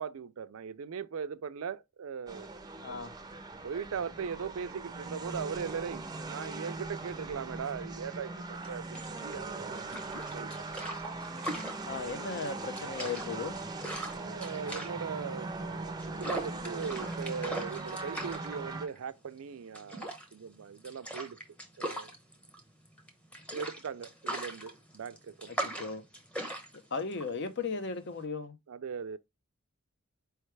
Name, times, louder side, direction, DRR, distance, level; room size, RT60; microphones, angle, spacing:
voice 1, 0.0-2.5 3.6-9.9 10.3-10.8 14.1-21.4 21.8-22.1 23.5-25.9 28.7-29.2, right 6 dB, 75° right, 0.4 m, -39 dB
sound 1, 2.3-18.9, right 3 dB, 20° right, 0.5 m, -40 dB
voice 2, 2.8-3.2 11.8-13.6 25.5-26.0 26.9-28.6, left 4 dB, 55° left, 0.7 m, -36 dB
sound 2, 8.6-28.3, right 1 dB, 5° left, 0.9 m, -41 dB
4.6 x 3.2 x 3.2 m
head